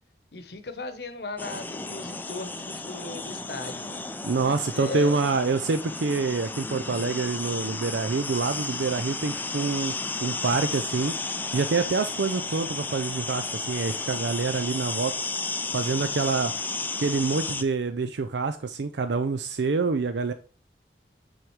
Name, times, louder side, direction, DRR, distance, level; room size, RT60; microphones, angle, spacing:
voice 1, 0.3-4.1 4.7-5.3, left 3 dB, 70° left, 0.9 m, -37 dB
sound 1, 1.4-17.6, left 3 dB, 10° left, 0.4 m, -33 dB
voice 2, 4.2-9.9 10.2-11.1 11.5-15.1 15.7-16.5 17.0-20.3, right 4 dB, 80° right, 0.5 m, -26 dB
6.3 x 5.1 x 4.6 m
head